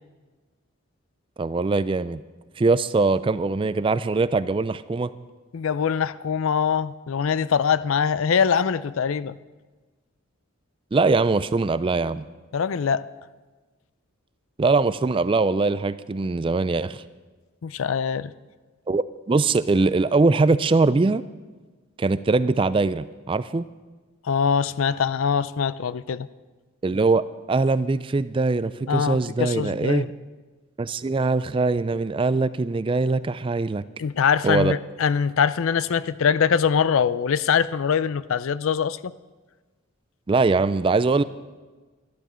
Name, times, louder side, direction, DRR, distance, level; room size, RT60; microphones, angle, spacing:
voice 1, 1.4-2.2 2.6-5.1 10.9-12.2 14.6-17.0 18.9-21.2 22.0-23.6 26.8-27.2 27.5-30.1 30.8-33.8 34.4-34.8 40.3-41.2, right 3 dB, 25° right, 0.3 m, -22 dB
voice 2, 5.5-9.4 12.5-13.1 17.6-18.3 24.2-26.3 28.9-30.1 34.0-39.1, left 6 dB, 70° left, 0.4 m, -23 dB
12.5 x 12.0 x 6.2 m
head